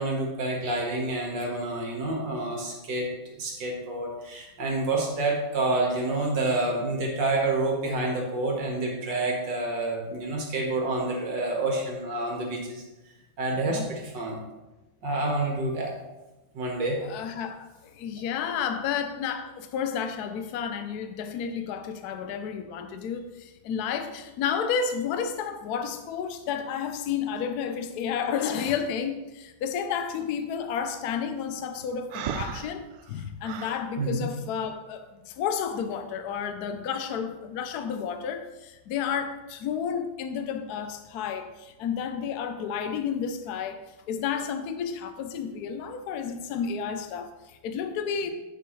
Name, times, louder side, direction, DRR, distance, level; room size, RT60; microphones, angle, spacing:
voice 1, 0.0-3.1 3.4-12.8 13.4-14.4 15.0-15.9 16.5-17.0 34.0-34.3, right 2 dB, 60° right, 0 dB, 2.1 m, -28 dB
voice 2, 17.0-48.3, left 7 dB, 75° left, 8 dB, 0.9 m, -31 dB
Breathing, 32.1-33.9, right 8 dB, 90° right, 1.5 m, -35 dB
9.4 x 6.8 x 3.1 m, 1.0 s
omnidirectional pair, 2.3 m